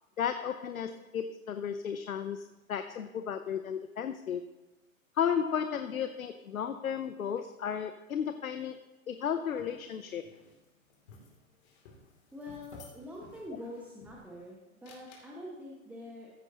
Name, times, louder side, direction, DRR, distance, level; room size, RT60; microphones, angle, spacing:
voice 1, 0.2-4.4 5.1-10.2, left 8 dB, 80° left, 10 dB, 0.8 m, -34 dB
sound 1, 9.1-14.5 14.8-15.3, left 3 dB, 50° left, 2.9 m, -56 dB
voice 2, 12.3-16.3, left 1 dB, 5° right, -3 dB, 1.4 m, -45 dB
14.5 x 9.6 x 2.9 m, 1.1 s
figure-of-eight pair, 115°, 42 cm